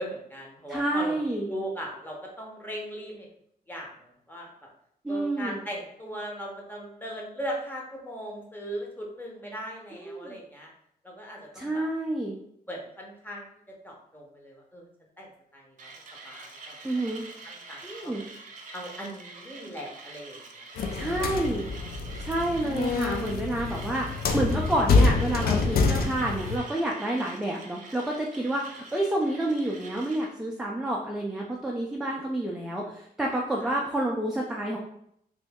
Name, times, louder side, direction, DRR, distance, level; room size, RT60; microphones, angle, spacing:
voice 1, 0.0-3.3 3.7-4.5 5.1-10.7 11.0-11.8 12.7-13.5 13.8-14.9 15.2-15.9 16.2-17.2 17.4-18.1 18.7-21.2 33.6-33.7, equal, 10° left, -2 dB, 0.8 m, -39 dB
voice 2, 0.7-1.5 5.0-5.6 9.9-10.4 11.5-12.3 16.8-17.2 17.8-18.2 20.9-21.7 22.2-34.8, right 1 dB, 5° right, -2 dB, 0.4 m, -29 dB
Mechanisms, 15.8-30.3, right 3 dB, 50° right, 0.6 m, -46 dB
sound 1, 20.8-26.6, left 4 dB, 65° left, 0.4 m, -26 dB
3.0 x 2.6 x 3.5 m, 0.72 s
wide cardioid pair, 125°, 16 cm